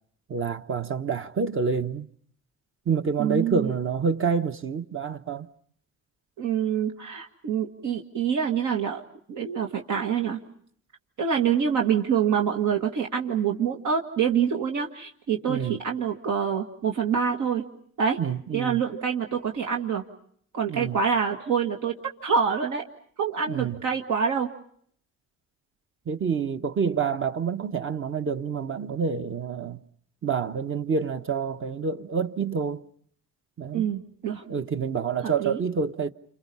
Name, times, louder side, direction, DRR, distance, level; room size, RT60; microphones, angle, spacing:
voice 1, 0.3-2.1 2.9-5.5 15.5-15.8 18.2-18.8 20.7-21.0 23.5-23.8 26.1-29.8 30.2-32.8 33.6-33.9 34.5-36.1, right 6 dB, 45° right, 1.2 m, -28 dB
voice 2, 3.2-3.7 6.4-9.0 9.3-10.4 11.2-17.7 18.0-18.2 18.5-20.0 20.5-21.9 22.2-22.8 23.2-24.5 33.7-34.4 35.2-35.6, right 7 dB, 75° right, 2.0 m, -26 dB
29.0 x 27.5 x 5.5 m
cardioid pair, 90°, 30 cm